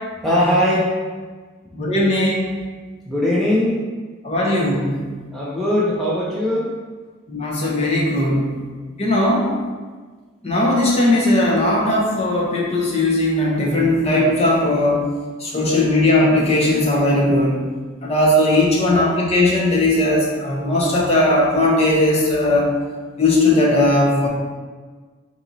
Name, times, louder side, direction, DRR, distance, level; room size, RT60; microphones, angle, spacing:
voice 1, 0.2-0.9 3.1-3.8 5.3-6.7, left 1 dB, ahead, -7 dB, 0.5 m, -19 dB
voice 2, 1.7-2.5 4.2-5.0 7.3-8.5 9.0-9.5 10.4-15.1 15.4-17.6 18.0-22.7 23.2-24.3, left 1 dB, 35° left, -3 dB, 0.9 m, -18 dB
4.3 x 2.9 x 3.9 m, 1.4 s
head